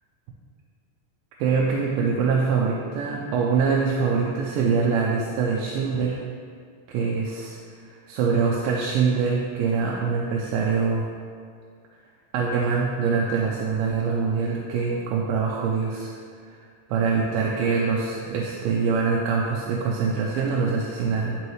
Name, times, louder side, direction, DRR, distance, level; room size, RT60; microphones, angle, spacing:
voice 1, 1.4-6.2 6.9-11.1 12.3-16.1 16.4-16.6 16.9-21.4, right 5 dB, 85° right, -3 dB, 2.4 m, -24 dB
9.5 x 5.5 x 3.1 m, 2.1 s
omnidirectional pair, 4.2 m